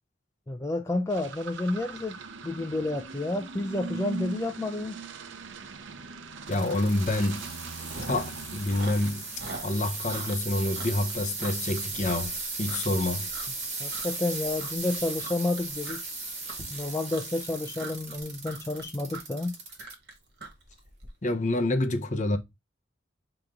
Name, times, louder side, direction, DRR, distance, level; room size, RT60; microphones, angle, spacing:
voice 1, 0.5-2.1 2.4-5.0 13.8-16.1 16.7-19.6, left 2 dB, 15° left, 0.3 m, -30 dB
sound 1, 1.1-10.6, right 5 dB, 85° right, 0.7 m, -41 dB
voice 2, 6.5-7.4 8.1-9.2 9.6-12.3 12.6-13.3 21.2-22.4, left 1 dB, 40° left, 0.7 m, -27 dB
sound 2, 6.5-19.9 20.5-20.9 21.6-21.7, right 3 dB, 35° right, 2.0 m, -37 dB
Chewing mastication, 6.9-7.1 7.4-8.4 8.6-13.0 13.3-13.7 13.9-14.3 14.6-21.1, right 3 dB, 55° right, 1.6 m, -42 dB
4.9 x 2.9 x 3.6 m
head